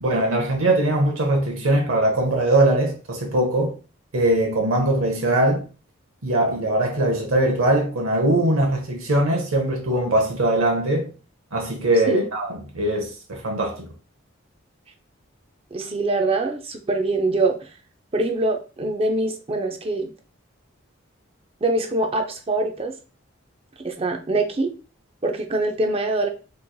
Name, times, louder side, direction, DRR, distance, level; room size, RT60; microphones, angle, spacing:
voice 1, 0.0-3.8 4.1-5.7 6.2-11.1 11.5-13.9, right 1 dB, 85° right, 0.8 m, -21 dB
voice 2, 15.7-17.5 18.1-20.1 21.6-22.9 23.8-24.7 25.2-26.3, right 2 dB, 30° right, 0.5 m, -23 dB
3.9 x 3.1 x 2.2 m
head